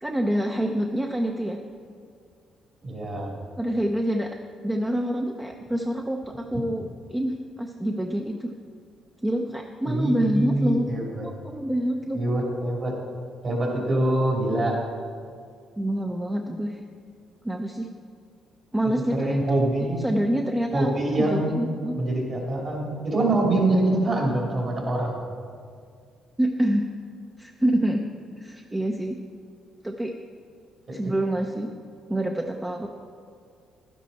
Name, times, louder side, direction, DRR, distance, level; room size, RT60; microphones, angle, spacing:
voice 1, 0.0-1.6 3.6-4.3 4.6-8.5 9.2-10.9 11.2-12.2 15.8-16.8 17.4-17.9 18.7-19.7 20.0-22.0 26.4-26.9 27.4-28.0 28.4-29.2 29.8-30.1 30.9-31.7 32.1-32.9, right 1 dB, 15° right, 3 dB, 0.6 m, -26 dB
voice 2, 2.8-3.3 9.8-11.3 12.1-12.9 13.4-14.8 19.1-20.0 20.7-25.2 30.9-31.0, right 1 dB, 45° right, -1 dB, 3.1 m, -25 dB
11.5 x 10.0 x 4.2 m, 2.2 s
cardioid pair, 90°, 0 cm